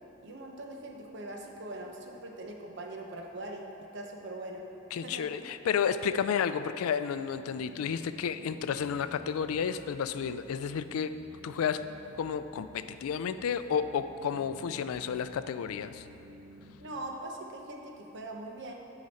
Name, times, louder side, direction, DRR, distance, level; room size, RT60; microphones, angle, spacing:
voice 1, 0.2-3.7 3.9-4.6 5.0-5.3 16.8-18.7, right 1 dB, 55° right, 1 dB, 0.8 m, -41 dB
voice 2, 4.9-11.1 11.4-11.8 12.2-16.0, left 7 dB, 85° left, 12 dB, 0.3 m, -31 dB
sound 1, 7.3-16.8, right 1 dB, 90° right, 1.0 m, -52 dB
9.6 x 5.0 x 4.1 m, 2.9 s
head